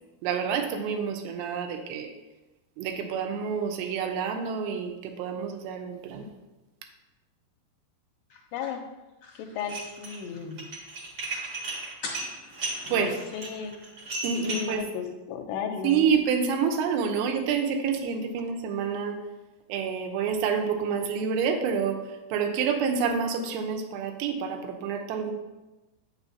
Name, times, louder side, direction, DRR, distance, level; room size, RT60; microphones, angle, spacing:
voice 1, 0.2-2.1 2.8-6.3 12.9-13.2 14.2-14.9 15.8-19.2 19.7-25.3, right 6 dB, 85° right, 4 dB, 2.8 m, -28 dB
sound 1, 8.3-10.7 11.0-11.1 11.3-11.6 12.0-13.3, left 3 dB, 65° left, 1.5 m, -43 dB
voice 2, 8.5-8.8 9.4-10.7 12.9-13.1 13.3-13.8 14.5-16.1, left 7 dB, 85° left, 5 dB, 2.7 m, -34 dB
Dishes pots and pans, 9.6-10.2 10.5-14.7, right 2 dB, 60° right, 1.4 m, -35 dB
8.1 x 6.3 x 2.7 m, 1.1 s
omnidirectional pair, 4.9 m